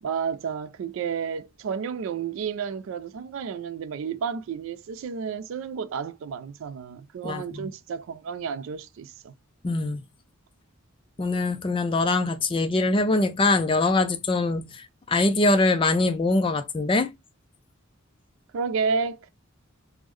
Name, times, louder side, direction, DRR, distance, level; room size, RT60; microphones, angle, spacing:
voice 1, 0.0-9.3 18.5-19.3, right 6 dB, 70° right, 0.3 m, -31 dB
voice 2, 7.2-7.7 9.6-10.0 11.2-17.1, left 2 dB, 25° left, 0.3 m, -23 dB
3.5 x 2.0 x 3.1 m
head